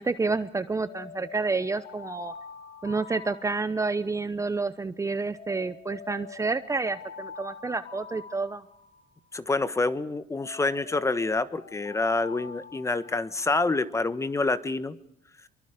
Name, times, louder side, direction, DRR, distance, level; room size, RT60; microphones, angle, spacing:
voice 1, 0.0-2.3 2.8-8.6, right 3 dB, 20° right, 13 dB, 0.8 m, -29 dB
Alarm, 0.9-4.2 5.3-9.2 10.3-13.6, left 6 dB, 75° left, 4.9 m, -45 dB
voice 2, 9.3-14.9, left 3 dB, 15° left, 13 dB, 1.3 m, -27 dB
25.0 x 23.5 x 5.1 m, 0.70 s
cardioid pair, 110°, 17 cm